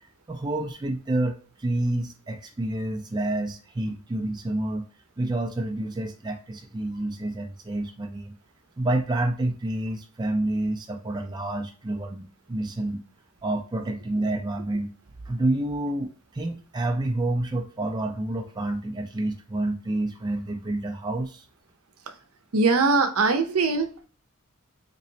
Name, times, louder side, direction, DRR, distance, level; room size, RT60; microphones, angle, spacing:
voice 1, 0.3-4.9 5.2-8.3 8.8-13.0 13.4-14.9 15.3-21.5, right 1 dB, 20° right, 4 dB, 0.4 m, -28 dB
voice 2, 22.5-24.1, right 3 dB, 80° right, 7 dB, 0.7 m, -21 dB
3.9 x 3.0 x 2.6 m, 0.40 s
head